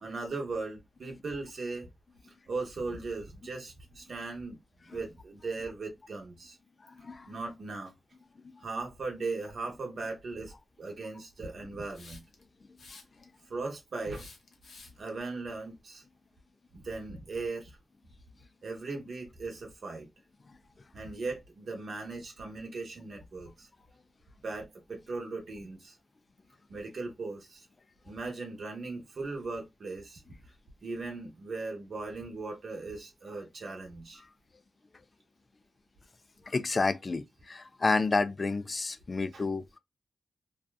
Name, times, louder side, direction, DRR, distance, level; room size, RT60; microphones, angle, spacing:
voice 1, 0.0-1.9 2.2-4.6 4.9-6.6 7.3-8.0 8.6-12.2 13.5-14.3 15.0-16.0 16.7-17.8 18.6-20.1 20.9-23.7 24.4-26.0 26.7-27.7 28.0-30.2 30.8-34.2 39.3-39.5, right 3 dB, 60° right, 0.8 m, -38 dB
voice 2, 7.0-7.4 36.5-39.6, left 3 dB, 40° left, 0.3 m, -30 dB
Hiss, 11.9-12.4 12.8-13.4 14.1-15.1, left 3 dB, 65° left, 0.7 m, -51 dB
2.7 x 2.3 x 2.2 m
cardioid pair, 85°, 0 cm